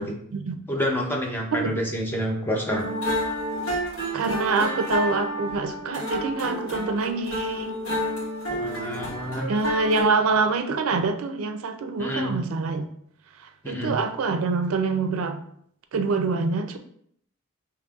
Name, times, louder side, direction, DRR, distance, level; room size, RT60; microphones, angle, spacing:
voice 1, 0.7-2.8 8.5-9.5 12.0-12.3 13.6-14.0, equal, 10° left, 0 dB, 0.6 m, -28 dB
sound 1, 2.7-10.0, left 1 dB, 75° left, 1.6 m, -30 dB
voice 2, 4.1-7.7 9.5-12.9 13.4-15.4 15.9-16.8, right 4 dB, 75° right, 7 dB, 0.4 m, -25 dB
5.2 x 2.9 x 2.3 m, 0.67 s
head